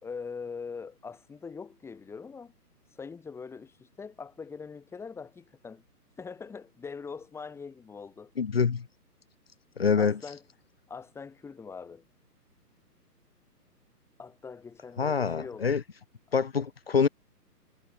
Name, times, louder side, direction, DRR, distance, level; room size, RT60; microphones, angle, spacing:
voice 1, 0.0-2.5 2.9-5.8 6.2-8.3 10.0-10.4 10.9-12.0 14.2-15.7, left 5 dB, 5° left, 2.0 m, -42 dB
voice 2, 8.4-8.9 9.8-10.2 15.0-15.8 16.3-17.1, left 6 dB, 40° left, 0.4 m, -25 dB
figure-of-eight pair, 135°, 49 cm